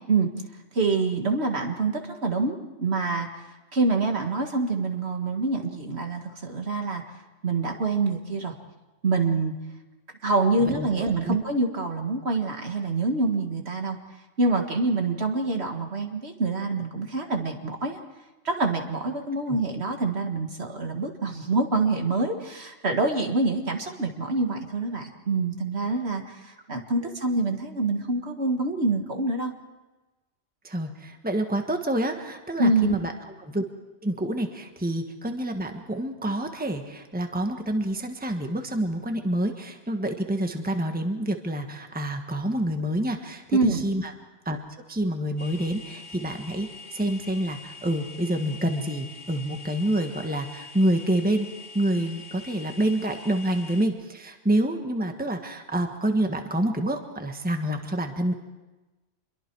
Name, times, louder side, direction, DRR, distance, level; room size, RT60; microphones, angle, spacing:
voice 1, 0.7-3.3 3.7-7.0 7.4-8.5 9.0-9.5 10.2-14.0 14.4-18.0 18.4-29.5 32.6-33.0 43.5-43.8, right 3 dB, 55° right, 4 dB, 2.1 m, -26 dB
voice 2, 30.6-33.1 33.4-33.6 34.0-44.1 44.4-44.6 44.9-51.5 51.7-58.3, right 1 dB, 5° right, 5 dB, 1.4 m, -27 dB
sound 1, 45.4-53.9, left 4 dB, 50° left, 3.4 m, -44 dB
26.5 x 22.5 x 4.7 m, 1.1 s
omnidirectional pair, 1.3 m